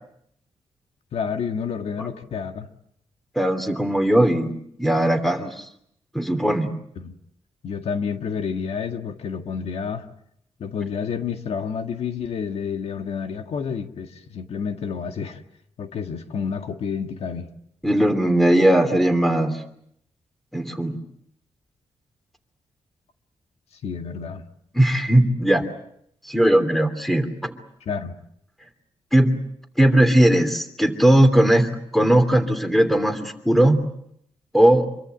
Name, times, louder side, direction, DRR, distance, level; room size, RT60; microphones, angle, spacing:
voice 1, 1.1-2.7 7.0-7.2 7.6-10.1 10.6-15.4 15.8-17.5 23.8-24.4 27.9-28.2, left 6 dB, 75° left, 1.8 m, -29 dB
voice 2, 3.3-5.6 6.1-6.7 17.8-19.6 20.5-21.0 24.7-25.7 26.2-27.6 29.1-29.4 29.8-33.8 34.5-34.9, right 1 dB, ahead, 2.9 m, -18 dB
26.5 x 23.0 x 8.2 m
wide cardioid pair, 120°, 11 cm